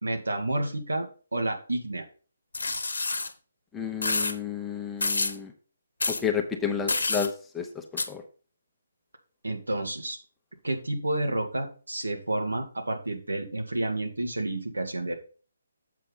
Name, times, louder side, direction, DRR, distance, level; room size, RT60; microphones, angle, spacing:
voice 1, 0.0-2.0 9.4-10.2 10.6-15.2, right 1 dB, 80° right, 4 dB, 1.7 m, -30 dB
sound 1, 2.5-3.3 4.0-4.3 5.0-5.3 6.0-6.2 6.9-7.3 8.0-8.1, left 3 dB, 70° left, 0.9 m, -27 dB
voice 2, 3.7-5.5 6.2-7.7 8.1-8.2, left 7 dB, 10° left, 4 dB, 0.9 m, -31 dB
7.5 x 5.6 x 4.0 m, 0.38 s
figure-of-eight pair, 140°, 0 cm